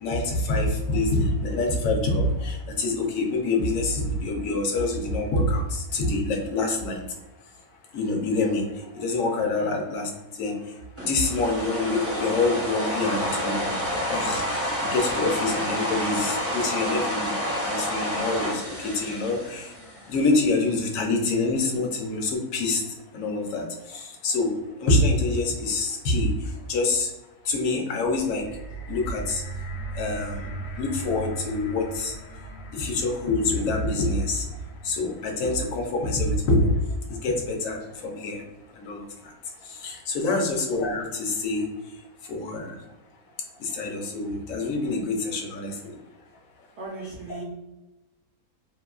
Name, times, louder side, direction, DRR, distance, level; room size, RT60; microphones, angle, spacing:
voice 1, 0.0-7.0 7.9-8.6 8.9-10.1 10.4-10.5 11.1-13.7 14.1-14.6 14.9-17.3 17.6-19.7 20.1-22.8 23.1-23.6 23.9-24.5 24.8-26.3 26.7-27.1 27.5-28.4 28.9-29.4 30.0-30.4 30.8-32.1 32.7-34.4 34.8-36.7 37.2-37.8 38.0-38.4 38.8-39.0 39.8-41.6 42.3-42.7 43.6-45.7, left 2 dB, 65° left, 1 dB, 0.9 m, -26 dB
sound 1, 11.0-20.2, equal, 15° right, 0.4 m, -29 dB
sound 2, 28.0-38.2 39.0-39.1, right 2 dB, 85° left, 1.1 m, -39 dB
voice 2, 40.2-40.6 46.8-47.4, right 2 dB, 70° right, -3 dB, 0.6 m, -38 dB
2.8 x 2.2 x 2.3 m, 1.0 s
omnidirectional pair, 1.7 m